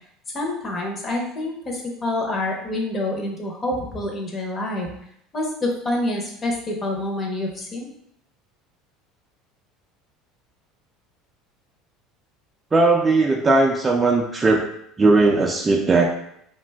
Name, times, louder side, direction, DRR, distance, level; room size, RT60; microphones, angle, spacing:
voice 1, 0.3-4.9 5.3-7.9, left 1 dB, 30° left, 0 dB, 0.7 m, -27 dB
voice 2, 12.7-14.6 15.0-16.0, right 3 dB, 20° right, 1 dB, 0.3 m, -18 dB
2.4 x 2.2 x 3.3 m, 0.72 s
supercardioid pair, 120°, 0 cm